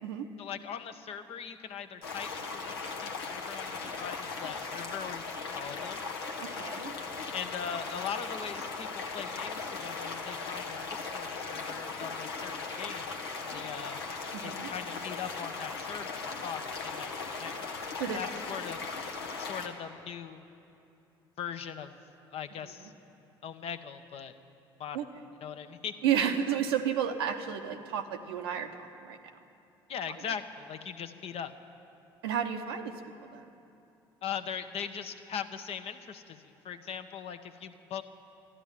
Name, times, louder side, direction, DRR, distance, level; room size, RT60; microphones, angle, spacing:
voice 1, 0.4-5.3 5.5-6.0 7.3-14.0 14.4-17.1 17.4-17.6 18.0-18.8 19.4-20.4 21.4-21.9 22.3-22.9 23.4-24.3 24.8-25.1 25.4-25.9 29.9-31.5 34.2-38.0, left 8 dB, 50° left, 9 dB, 0.8 m, -40 dB
sound 1, 2.0-19.7, left 4 dB, 85° left, 0.8 m, -38 dB
voice 2, 6.4-6.9 14.3-14.7 18.0-18.2 24.9-25.0 26.0-29.2 32.2-32.9 33.2-33.5, right 8 dB, 80° right, 6 dB, 0.7 m, -32 dB
13.5 x 11.0 x 7.3 m, 2.8 s
hypercardioid pair, 50°, 13 cm